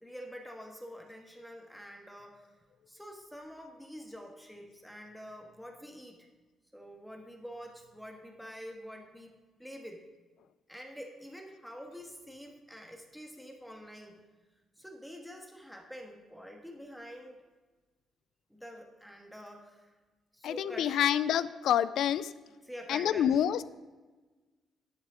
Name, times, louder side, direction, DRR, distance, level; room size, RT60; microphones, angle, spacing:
voice 1, 0.0-2.6 2.9-6.3 6.7-9.3 9.6-10.0 10.7-14.2 14.8-17.4 18.5-19.9 20.3-21.0 22.6-23.4, equal, ahead, 2 dB, 1.4 m, -47 dB
voice 2, 20.4-22.3 22.9-23.6, left 10 dB, 75° left, 16 dB, 0.4 m, -27 dB
11.0 x 6.3 x 5.0 m, 1.3 s
cardioid pair, 90°, 0 cm